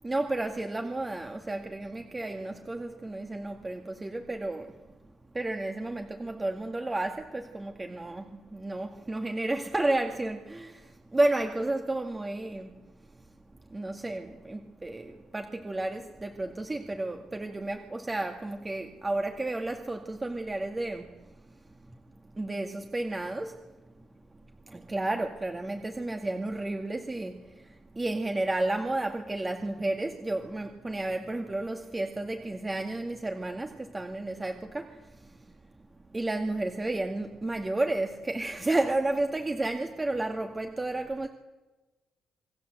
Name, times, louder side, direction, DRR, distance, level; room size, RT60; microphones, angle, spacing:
voice 1, 0.0-4.9 5.3-13.3 13.7-22.0 22.3-24.1 24.7-35.8 36.1-41.3, right 2 dB, 20° right, 2.2 m, -32 dB
28.0 x 22.0 x 8.1 m
cardioid pair, 90°, 0 cm